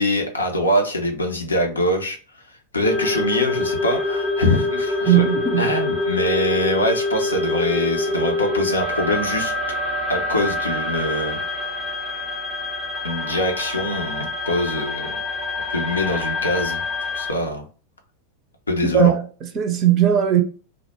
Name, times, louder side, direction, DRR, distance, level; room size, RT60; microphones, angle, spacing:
voice 1, 0.0-2.2 2.5-5.2 5.6-9.5 10.1-11.4 13.0-15.1 15.7-16.8 17.1-17.6 18.7-19.1, left 1 dB, 75° left, 0.5 m, -23 dB
sound 1, 2.8-17.3, left 2 dB, 25° left, 0.5 m, -25 dB
voice 2, 5.1-5.7 18.9-20.4, right 9 dB, 35° right, 0.5 m, -18 dB
2.1 x 2.0 x 2.9 m
figure-of-eight pair, 90°, 0 cm